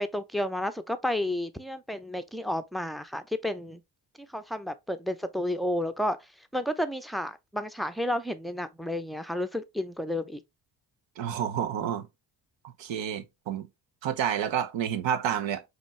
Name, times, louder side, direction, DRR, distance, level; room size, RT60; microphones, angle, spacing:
voice 1, 0.0-3.8 4.2-6.2 6.5-10.4, left 1 dB, ahead, 0.6 m, -31 dB
voice 2, 11.2-12.1 12.6-13.7 14.0-15.6, right 9 dB, 65° right, 0.9 m, -29 dB
5.1 x 3.0 x 3.2 m
hypercardioid pair, 45°, 49 cm